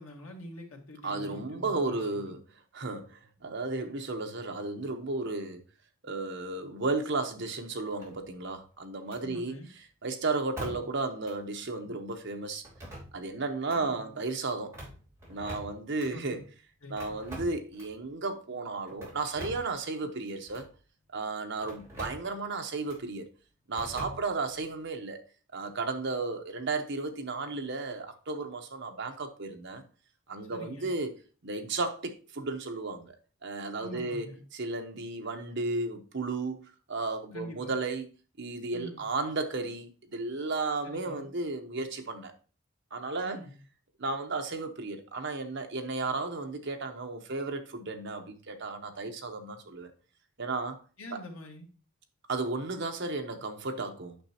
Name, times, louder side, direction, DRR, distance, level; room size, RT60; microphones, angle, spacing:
voice 1, 0.0-2.4 9.2-9.7 10.6-10.8 13.7-14.1 16.0-16.4 16.8-17.1 30.5-30.9 33.8-34.4 37.3-37.7 38.7-39.1 40.8-41.3 43.2-43.6 51.0-51.7, left 1 dB, 70° left, 1.7 m, -45 dB
voice 2, 1.0-2.4 2.7-5.6 6.0-9.5 10.0-12.6 13.1-14.7 15.3-16.4 16.9-20.7 21.1-23.3 23.7-25.2 25.5-29.8 30.3-31.1 31.4-33.2 33.4-34.3 34.5-38.1 38.4-42.3 42.9-43.4 44.0-49.9 50.4-50.8 51.1-51.2 52.3-54.2, right 3 dB, 55° right, 0.9 m, -34 dB
sound 1, 8.0-8.5 9.1-9.2 10.6-11.0 11.2-11.3 12.6-13.3 13.6-13.8 14.6-16.1 17.0-18.0 18.9-19.8 20.5-20.7 21.6-22.3 22.9-23.0 23.7-24.6, equal, 15° right, 3.1 m, -44 dB
8.8 x 6.1 x 2.8 m
head